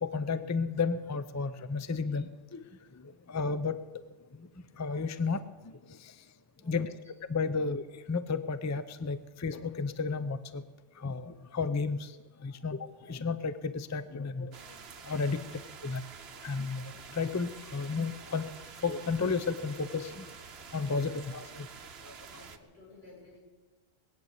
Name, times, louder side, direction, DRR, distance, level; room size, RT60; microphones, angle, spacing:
voice 1, 0.0-2.6 3.3-3.8 4.8-5.4 6.7-6.9 7.3-7.8 8.1-10.6 11.0-12.0 12.4-12.8 13.1-14.5 15.1-15.4 15.8-16.0 16.4-16.8 17.2-18.5 18.8-20.3 20.7-21.7, left 4 dB, 20° left, 13 dB, 0.5 m, -32 dB
voice 2, 6.6-7.0 22.3-23.4, left 2 dB, 75° left, -5 dB, 7.1 m, -55 dB
sound 1, 14.5-22.6, right 6 dB, 80° right, 1.2 m, -48 dB
20.5 x 8.6 x 8.0 m, 1.3 s
omnidirectional pair, 1.1 m